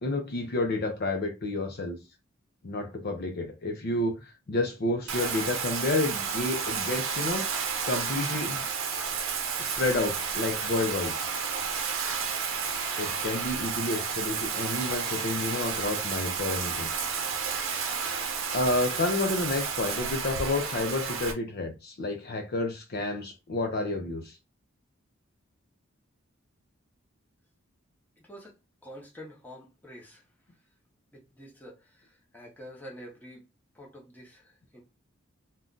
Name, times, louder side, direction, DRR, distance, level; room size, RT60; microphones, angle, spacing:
voice 1, 0.0-2.0 2.6-7.5 7.8-8.7 9.6-11.1 13.0-16.9 18.5-24.4, left 2 dB, 50° left, 0.5 m, -30 dB
Bathtub (filling or washing), 5.1-21.3, right 6 dB, 80° right, 0.7 m, -31 dB
voice 2, 28.2-28.5 28.8-30.2 31.1-33.5 33.7-34.8, equal, 10° left, 0.8 m, -47 dB
2.5 x 2.2 x 3.7 m
head